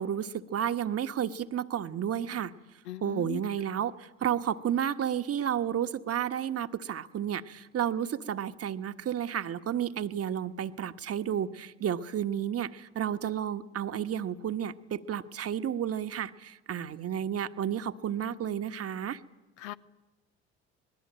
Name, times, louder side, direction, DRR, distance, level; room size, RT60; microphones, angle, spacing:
voice 1, 0.0-2.5 3.0-19.2, right 9 dB, 45° right, 9 dB, 1.4 m, -32 dB
voice 2, 2.9-3.4 19.6-19.7, left 14 dB, 75° left, 12 dB, 1.0 m, -38 dB
25.5 x 20.0 x 9.0 m, 1.1 s
hypercardioid pair, 55°, 34 cm